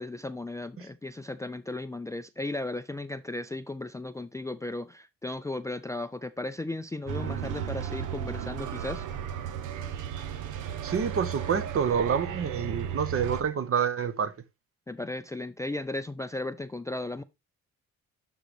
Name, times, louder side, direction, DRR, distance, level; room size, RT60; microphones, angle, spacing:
voice 1, 0.0-9.1 14.9-17.2, left 2 dB, 10° left, 0.4 m, -35 dB
sound 1, 7.1-13.4, right 9 dB, 85° right, 0.9 m, -35 dB
voice 2, 10.8-14.3, right 7 dB, 45° right, 1.0 m, -27 dB
11.5 x 3.9 x 3.2 m
cardioid pair, 90°, 30 cm